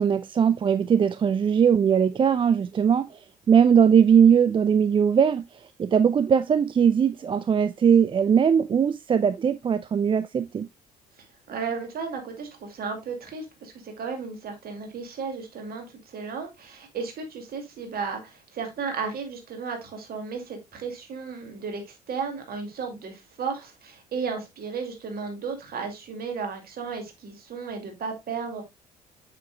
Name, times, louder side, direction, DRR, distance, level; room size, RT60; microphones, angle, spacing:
voice 1, 0.0-10.7, right 7 dB, 25° right, 0.4 m, -20 dB
voice 2, 11.5-28.6, right 5 dB, 50° right, 2.4 m, -34 dB
7.4 x 7.0 x 2.2 m
figure-of-eight pair, 50°, 21 cm